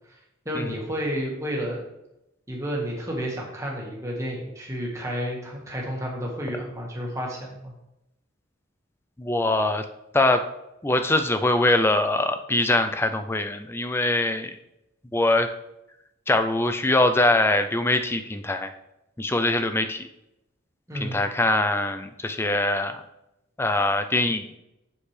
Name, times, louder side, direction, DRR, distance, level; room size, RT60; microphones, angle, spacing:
voice 1, 0.4-1.8 2.5-7.7 20.9-21.2, equal, 15° right, -2 dB, 1.6 m, -31 dB
voice 2, 9.2-9.8 10.1-10.5 10.8-14.5 15.1-15.5 16.3-18.7 19.2-20.1 20.9-23.0 23.6-24.6, left 2 dB, 10° left, 8 dB, 0.4 m, -23 dB
7.3 x 6.6 x 3.3 m, 0.88 s
head